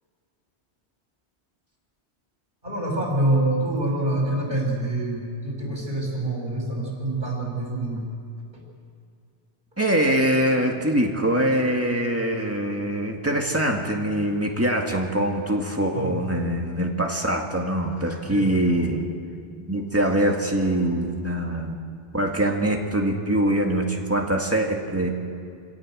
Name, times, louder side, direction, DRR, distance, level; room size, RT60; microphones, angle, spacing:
voice 1, 2.6-8.1 8.5-8.6 15.9-16.2 18.3-18.5, right 2 dB, 50° right, -1 dB, 5.4 m, -26 dB
voice 2, 9.8-19.0 19.7-21.8 22.1-25.1, right 1 dB, 10° right, 1 dB, 2.1 m, -23 dB
26.0 x 17.0 x 7.6 m, 2.3 s
omnidirectional pair, 1.1 m